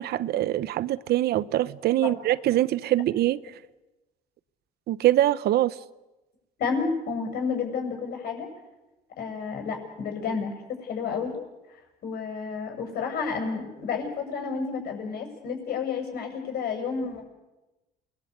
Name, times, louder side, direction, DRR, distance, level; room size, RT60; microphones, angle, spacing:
voice 1, 0.0-3.4 4.9-5.8, right 14 dB, 70° right, 1.0 m, -23 dB
voice 2, 6.6-8.5 9.2-11.4 12.0-17.2, left 5 dB, 65° left, 7.7 m, -31 dB
28.5 x 21.5 x 8.3 m
cardioid pair, 110°, 17 cm